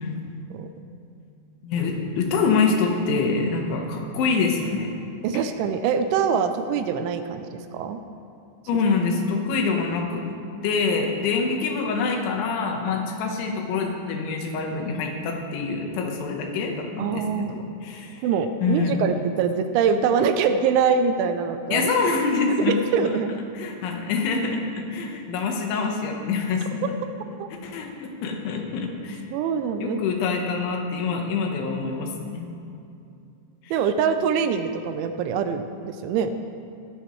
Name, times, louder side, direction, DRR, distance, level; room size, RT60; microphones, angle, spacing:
voice 1, 1.6-4.9 8.7-10.2 10.6-18.2 18.6-19.1 21.7-22.7 23.6-26.8 27.6-29.2 29.8-32.5 33.6-33.7, left 4 dB, 75° left, 2 dB, 3.5 m, -25 dB
voice 2, 5.2-8.0 17.0-17.6 18.2-21.9 22.6-23.3 27.4-27.5 29.3-30.0 33.7-36.3, right 6 dB, 80° right, 8 dB, 2.9 m, -24 dB
20.5 x 10.5 x 3.2 m, 2.6 s
omnidirectional pair, 5.6 m